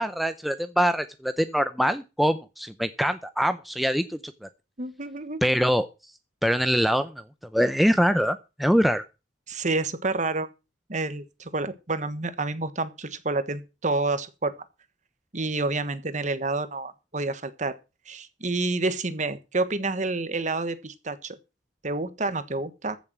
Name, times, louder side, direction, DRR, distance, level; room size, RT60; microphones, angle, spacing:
voice 1, 0.0-4.5 5.4-5.9 6.4-7.1 7.5-9.0, equal, ahead, 0.6 m, -24 dB
voice 2, 4.8-5.4 9.5-10.5 10.9-14.5 15.3-17.7 18.1-21.4 21.8-23.0, right 3 dB, 40° right, 1.4 m, -29 dB
15.0 x 7.0 x 6.1 m
head